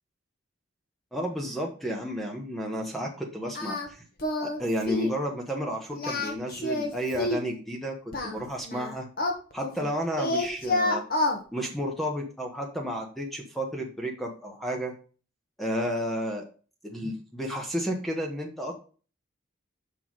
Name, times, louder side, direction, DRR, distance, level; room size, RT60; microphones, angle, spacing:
voice 1, 1.1-4.0 4.4-8.0 8.2-9.1 9.5-11.0 11.5-14.9 15.6-16.4 16.8-18.7, equal, ahead, 1 dB, 1.2 m, -32 dB
Singing, 3.5-3.9 4.2-4.6 4.9-5.2 5.9-7.5 8.1-9.9 10.2-11.4, left 2 dB, 45° left, 1.4 m, -28 dB
6.2 x 5.8 x 4.8 m, 0.38 s
head